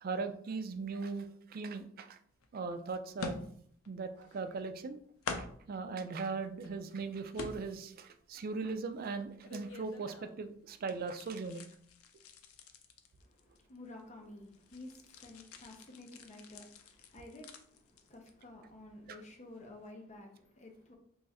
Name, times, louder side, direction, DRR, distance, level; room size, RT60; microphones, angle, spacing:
voice 1, 0.0-2.2 2.5-3.4 3.9-5.0 5.4-11.6, right 4 dB, 45° right, 0.3 m, -39 dB
sound 1, 2.4-2.5 3.2-3.9 4.2-4.9 5.2-5.8 6.3-6.9 7.3-8.0 8.4-10.5 10.8-14.0 14.3-18.5 18.8-19.1 19.6-19.7, left 4 dB, 90° left, 0.4 m, -47 dB
voice 2, 13.2-20.9, left 2 dB, 35° left, 0.7 m, -52 dB
3.1 x 2.4 x 4.0 m
head